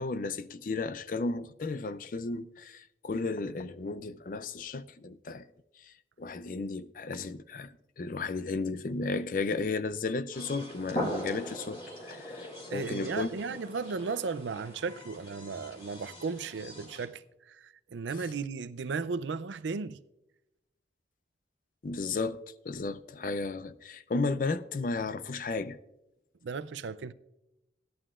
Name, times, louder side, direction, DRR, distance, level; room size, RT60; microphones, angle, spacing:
voice 1, 0.0-5.5 6.2-13.6 21.8-25.8, left 3 dB, 45° left, 0.4 m, -34 dB
sound 1, 10.3-17.1, equal, 30° left, 2.3 m, -41 dB
voice 2, 12.7-20.0 26.4-27.1, right 4 dB, 90° right, 0.5 m, -35 dB
16.5 x 11.0 x 2.4 m
head